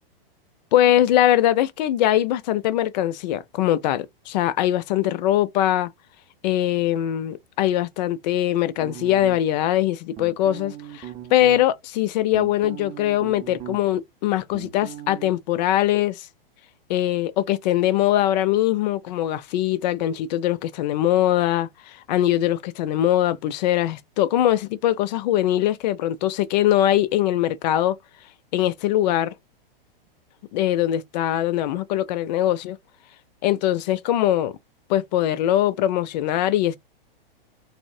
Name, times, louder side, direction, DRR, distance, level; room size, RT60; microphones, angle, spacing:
voice 1, 0.7-5.9 6.4-16.3 16.9-21.7 22.1-28.0 28.5-29.3 30.5-32.8 33.4-34.5 34.9-36.8, left 12 dB, 50° left, 0.5 m, -22 dB
sound 1, 8.8-9.7 10.1-11.6 12.1-14.0 14.3-15.3, right 11 dB, 20° right, 0.5 m, -38 dB
3.0 x 2.1 x 2.6 m
hypercardioid pair, 120°, 29 cm